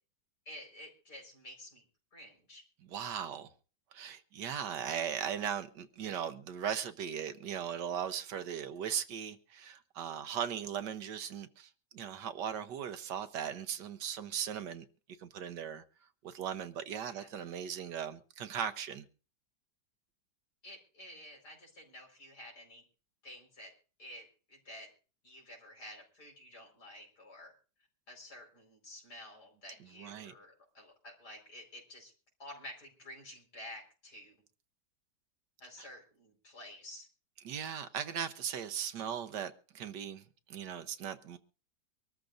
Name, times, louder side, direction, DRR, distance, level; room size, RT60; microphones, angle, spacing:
voice 1, 0.5-1.8 2.1-2.6 17.1-17.3 20.6-22.8 23.2-23.7 24.0-24.9 25.2-27.5 28.1-32.1 32.4-34.4 35.6-37.1, left 1 dB, 70° left, 5.3 m, -51 dB
voice 2, 2.8-3.5 3.9-14.8 15.2-15.8 16.2-19.1 29.8-30.3 35.8-35.9 37.4-41.4, right 8 dB, 85° right, 1.6 m, -38 dB
24.5 x 13.5 x 2.6 m
omnidirectional pair, 1.8 m